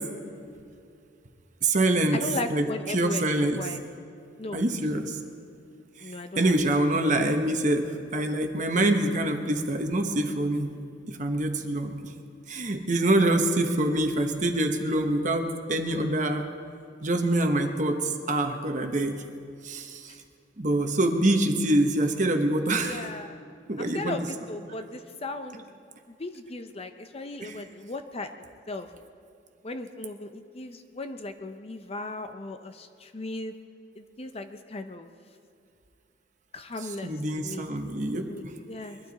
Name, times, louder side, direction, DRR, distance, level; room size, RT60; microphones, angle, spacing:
voice 1, 1.6-2.2 2.5-3.7 4.5-5.2 6.0-10.8 11.1-12.1 12.5-16.5 17.0-19.2 19.6-20.1 20.6-23.0 23.7-24.2 27.4-27.6 37.0-38.5, right 1 dB, 40° right, 5 dB, 1.1 m, -25 dB
voice 2, 2.1-3.3 3.6-3.8 4.4-4.6 6.0-6.5 20.1-20.2 22.8-23.4 23.8-25.6 26.1-28.3 28.7-28.9 29.6-33.6 34.0-35.1 36.5-37.7 38.1-39.0, left 2 dB, 30° left, 8 dB, 0.6 m, -37 dB
22.5 x 12.5 x 4.1 m, 2.4 s
head